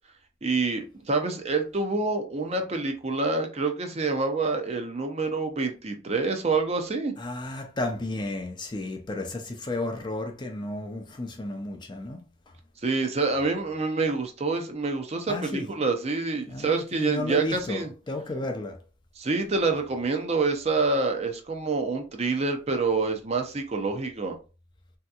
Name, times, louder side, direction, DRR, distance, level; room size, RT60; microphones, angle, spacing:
voice 1, 0.4-7.1 12.8-17.9 19.2-24.4, right 3 dB, 35° right, 0.5 m, -27 dB
voice 2, 7.2-12.2 15.3-15.7 16.5-18.8, left 2 dB, 25° left, 0.4 m, -33 dB
3.4 x 2.8 x 2.3 m
head